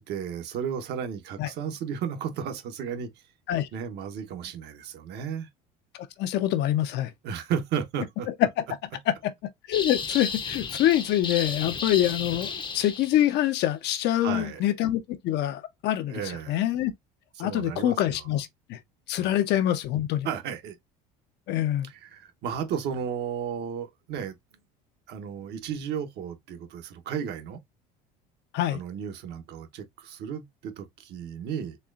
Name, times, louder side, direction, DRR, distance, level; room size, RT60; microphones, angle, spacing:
voice 1, 0.0-3.2 3.7-5.5 7.2-8.3 14.1-14.6 16.1-16.6 17.4-18.3 19.2-19.4 20.2-20.8 21.8-24.4 25.1-27.6 28.7-31.8, right 8 dB, 60° right, 1.0 m, -34 dB
voice 2, 6.2-7.1 9.2-9.3 9.7-16.2 16.5-16.9 17.4-18.8 19.1-20.3 21.5-21.9 28.5-28.8, left 12 dB, 60° left, 0.7 m, -25 dB
sound 1, 9.7-13.4, left 5 dB, 25° left, 0.7 m, -33 dB
4.3 x 3.1 x 2.5 m
supercardioid pair, 95°, 19 cm